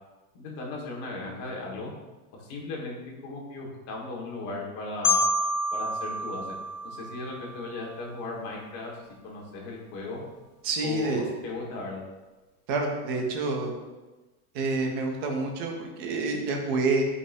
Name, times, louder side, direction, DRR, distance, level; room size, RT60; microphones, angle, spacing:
voice 1, 0.3-1.9 2.4-5.2 5.7-6.5 6.8-8.9 9.2-10.2 10.8-12.0, left 3 dB, 35° left, -2 dB, 1.8 m, -36 dB
Marimba xylophone, 5.0-7.9, left 2 dB, 65° left, 1.4 m, -28 dB
voice 2, 10.6-11.2 12.7-13.7 14.5-17.0, right 3 dB, 20° right, 2 dB, 0.4 m, -28 dB
12.0 x 5.5 x 2.7 m, 1.2 s
supercardioid pair, 180°, 44 cm